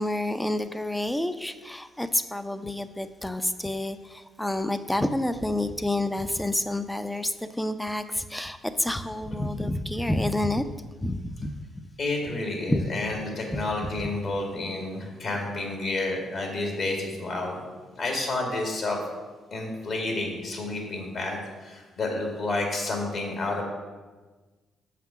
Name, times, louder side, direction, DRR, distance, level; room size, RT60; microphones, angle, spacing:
voice 1, 0.0-10.6 11.0-11.8 12.7-12.9 13.5-13.6, left 1 dB, 5° left, 11 dB, 0.5 m, -29 dB
voice 2, 12.0-17.6 17.9-19.0 19.5-23.6, left 2 dB, 55° left, 1 dB, 2.3 m, -30 dB
7.1 x 5.9 x 5.8 m, 1.3 s
cardioid pair, 90°, 0 cm